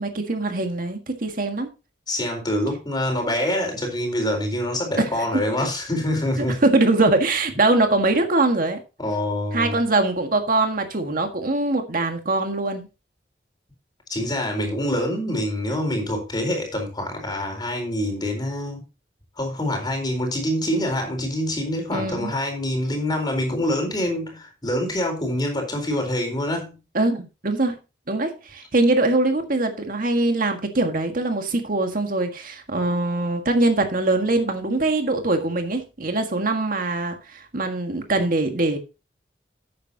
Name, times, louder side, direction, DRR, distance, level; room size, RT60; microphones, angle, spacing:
voice 1, 0.0-1.7 5.0-5.1 6.6-8.8 9.5-12.9 21.9-22.3 26.9-27.8 28.1-38.8, right 2 dB, 55° right, 1.7 m, -22 dB
voice 2, 2.1-6.6 9.0-9.8 14.1-18.8 19.4-26.8, left 1 dB, 25° left, 4.2 m, -25 dB
12.5 x 9.2 x 2.8 m
head